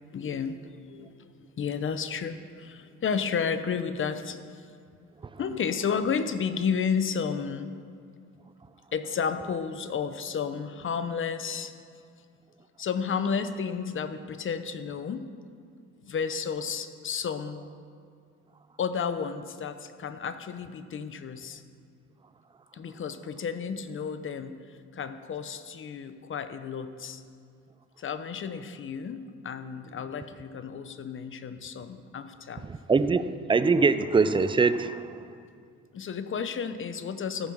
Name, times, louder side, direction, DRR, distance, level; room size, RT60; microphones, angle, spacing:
voice 1, 0.1-4.4 5.4-7.7 8.9-11.7 12.8-15.3 16.0-17.7 18.8-21.6 22.7-24.6 24.9-27.2 28.0-32.6 35.9-37.5, left 6 dB, 40° left, 11 dB, 0.7 m, -32 dB
voice 2, 32.6-33.2 33.5-35.2, right 4 dB, 15° right, 13 dB, 0.4 m, -23 dB
14.0 x 5.3 x 6.3 m, 2.3 s
cardioid pair, 90°, 30 cm